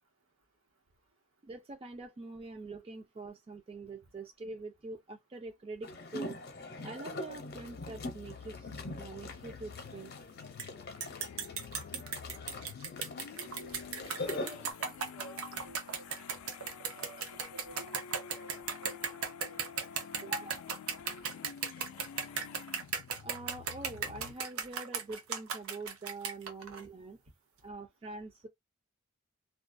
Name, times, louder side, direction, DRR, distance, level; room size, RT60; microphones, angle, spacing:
voice 1, 1.4-6.4 6.8-10.1 20.2-20.6 23.2-27.2 27.6-28.5, right 3 dB, 25° right, 0.3 m, -44 dB
sound 1, 5.8-14.7, left 2 dB, 50° left, 0.6 m, -43 dB
sound 2, 7.3-24.3, left 7 dB, 80° left, 0.3 m, -49 dB
sound 3, 10.6-10.7 11.0-26.8, right 6 dB, 90° right, 0.6 m, -37 dB
voice 2, 13.3-16.3 16.9-17.9 18.1-19.0 19.4-19.8 20.2-20.3, right 2 dB, 70° right, 1.1 m, -53 dB
2.3 x 2.1 x 2.5 m
head